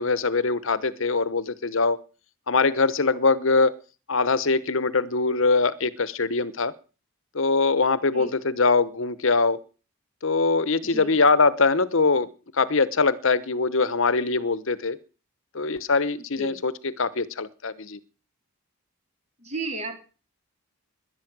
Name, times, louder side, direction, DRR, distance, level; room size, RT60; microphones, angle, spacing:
voice 1, 0.0-2.0 2.5-3.8 4.1-6.7 7.3-9.6 10.2-12.3 12.6-15.0 15.5-16.7 17.0-18.0, left 4 dB, 60° left, 16 dB, 1.0 m, -22 dB
voice 2, 10.8-11.2 16.4-16.6 19.4-19.9, right 2 dB, 30° right, 5 dB, 3.8 m, -33 dB
19.0 x 11.5 x 6.1 m, 0.37 s
head